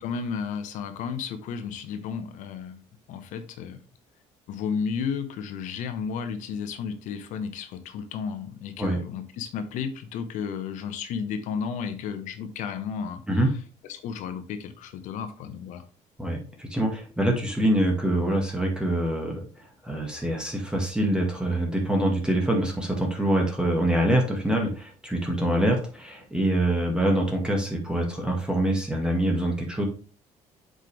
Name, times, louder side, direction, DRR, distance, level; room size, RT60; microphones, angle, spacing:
voice 1, 0.0-2.8 3.1-3.8 4.5-13.2 13.9-15.8, left 6 dB, 80° left, 9 dB, 1.2 m, -33 dB
voice 2, 16.2-19.4 19.8-29.8, right 1 dB, 5° right, 0 dB, 1.9 m, -25 dB
7.9 x 5.4 x 3.3 m, 0.38 s
cardioid pair, 105°, 13 cm